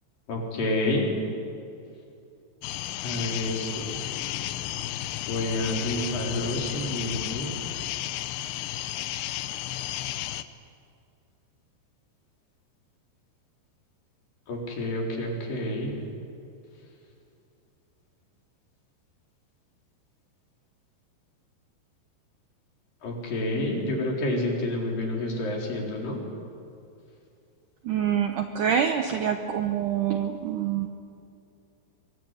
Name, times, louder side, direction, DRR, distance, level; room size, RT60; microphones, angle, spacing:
voice 1, 0.3-1.2 3.0-4.0 5.3-7.6 14.5-16.0 23.0-26.2, left 1 dB, 55° left, -1 dB, 5.7 m, -29 dB
sound 1, 2.6-10.4, left 14 dB, 85° left, 3.1 m, -33 dB
voice 2, 27.8-30.9, right 8 dB, 75° right, 6 dB, 1.9 m, -26 dB
24.0 x 22.0 x 9.8 m, 2.6 s
omnidirectional pair, 5.0 m